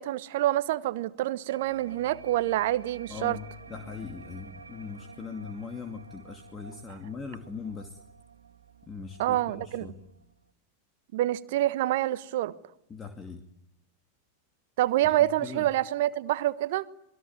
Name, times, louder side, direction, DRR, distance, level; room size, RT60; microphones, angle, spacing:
voice 1, 0.0-3.4 9.2-9.9 11.1-12.5 14.8-16.8, right 14 dB, 55° right, 1.3 m, -27 dB
sound 1, 1.5-10.5, right 5 dB, 75° right, 1.9 m, -50 dB
voice 2, 3.1-8.0 8.9-10.0 12.9-13.4 15.2-15.7, left 5 dB, 20° left, 2.5 m, -40 dB
27.0 x 21.5 x 9.8 m
figure-of-eight pair, 90°, 0 cm